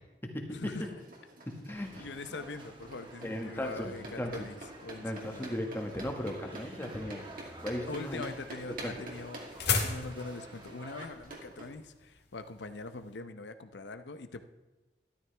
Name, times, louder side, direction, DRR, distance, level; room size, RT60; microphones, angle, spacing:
voice 1, 0.5-0.9 2.0-5.5 7.9-14.4, left 3 dB, 85° left, 10 dB, 0.8 m, -42 dB
sound 1, 0.7-11.7, right 2 dB, 55° right, 2.4 m, -48 dB
voice 2, 1.5-2.1 3.2-4.5 5.0-7.3 7.6-8.2 8.8-8.9, left 1 dB, 15° left, 2 dB, 1.6 m, -37 dB
sound 2, 1.7-11.1, right 1 dB, 30° right, 1.7 m, -52 dB
sound 3, 7.9-13.1, left 5 dB, 65° left, 1.7 m, -36 dB
13.0 x 12.5 x 3.4 m, 1.1 s
head